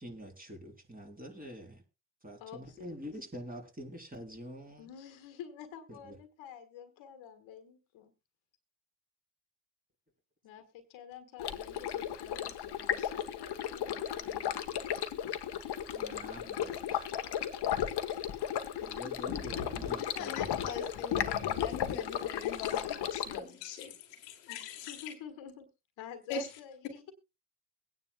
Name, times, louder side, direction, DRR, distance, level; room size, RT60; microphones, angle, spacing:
voice 1, 0.0-1.8 2.2-4.9 5.9-6.1 15.9-16.7 18.9-20.4, equal, 15° right, 2 dB, 3.4 m, -45 dB
voice 2, 2.4-3.2 4.8-8.1 10.4-14.6 18.8-18.9 24.4-25.7 26.0-27.1, left 8 dB, 70° left, 9 dB, 1.5 m, -49 dB
Stream, 11.4-23.4, left 10 dB, 55° left, 1.1 m, -35 dB
voice 3, 20.1-24.9 26.3-26.5, left 5 dB, 85° left, 5 dB, 1.4 m, -42 dB
22.5 x 9.5 x 2.2 m, 0.26 s
hypercardioid pair, 45°, 48 cm